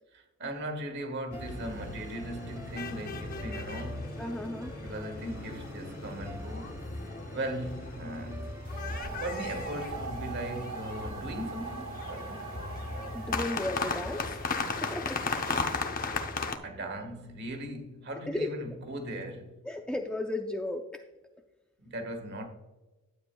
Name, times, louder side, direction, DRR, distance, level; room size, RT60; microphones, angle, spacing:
voice 1, 0.1-4.2 4.8-6.8 7.3-8.6 9.2-12.4 16.6-19.5 21.8-22.5, right 1 dB, 50° right, 1.5 m, -38 dB
sound 1, 1.3-16.6, left 3 dB, 40° left, 0.7 m, -36 dB
sound 2, 1.3-11.6, right 1 dB, 15° right, 0.8 m, -49 dB
voice 2, 4.2-4.7 13.1-14.5 14.8-15.7 18.3-18.5 19.6-21.0, left 1 dB, 5° left, 0.4 m, -35 dB
sound 3, 8.6-15.8, right 3 dB, 65° right, 1.6 m, -42 dB
12.0 x 8.6 x 2.3 m
head